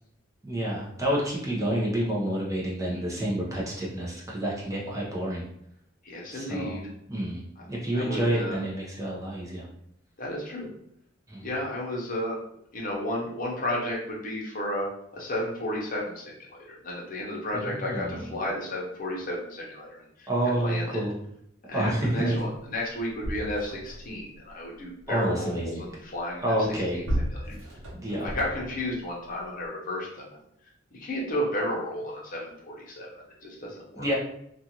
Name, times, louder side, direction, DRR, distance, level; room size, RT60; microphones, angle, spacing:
voice 1, 0.4-5.4 6.3-6.8 7.1-9.7 11.3-11.5 17.5-18.3 20.3-21.2 21.7-22.4 25.1-25.8 26.4-27.0 27.4-27.6 27.9-28.3 33.9-34.1, right 1 dB, 15° right, -5 dB, 0.7 m, -29 dB
voice 2, 6.0-6.9 7.9-8.6 10.2-10.7 11.4-12.4 12.7-21.0 21.7-26.6 26.9-27.1 27.3-27.5 28.2-30.3 30.9-34.1, left 1 dB, 45° left, -3 dB, 0.8 m, -33 dB
sound 1, 22.6-22.7 22.9-24.2 26.5-28.9 29.6-29.7, equal, 75° right, 0.8 m, -34 dB
2.5 x 2.4 x 2.9 m, 0.75 s
head